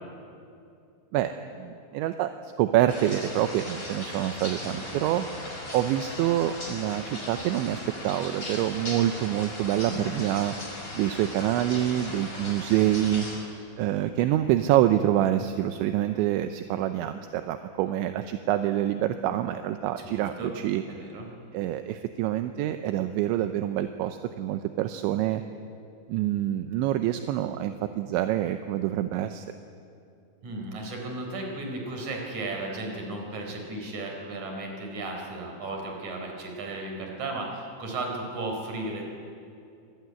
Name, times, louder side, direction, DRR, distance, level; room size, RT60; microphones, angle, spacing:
voice 1, 1.1-2.3 2.6-5.3 5.7-10.5 11.0-13.3 13.8-20.8 21.5-25.4 26.1-29.5, right 12 dB, 80° right, 8 dB, 2.9 m, -26 dB
sound 1, 2.9-13.4, left 1 dB, 15° left, 5.1 m, -38 dB
voice 2, 4.6-5.0 9.9-10.2 20.0-20.5 20.9-21.3 30.4-39.0, right 2 dB, 40° right, 2 dB, 5.2 m, -35 dB
25.5 x 22.0 x 9.6 m, 2.5 s
omnidirectional pair, 5.7 m